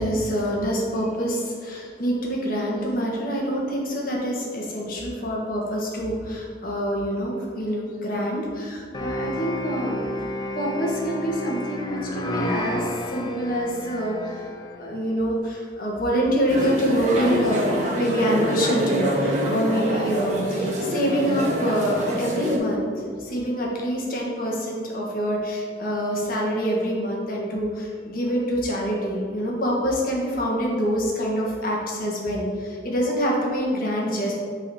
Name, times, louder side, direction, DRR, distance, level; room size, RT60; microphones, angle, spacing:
voice 1, 0.0-10.1 10.5-14.4 14.8-34.3, equal, 50° left, -3 dB, 1.5 m, -26 dB
sound 1, 8.9-14.9, left 1 dB, 25° left, 0.5 m, -31 dB
sound 2, 16.5-22.6, right 1 dB, 40° right, 1.2 m, -26 dB
8.3 x 4.1 x 4.2 m, 2.2 s
head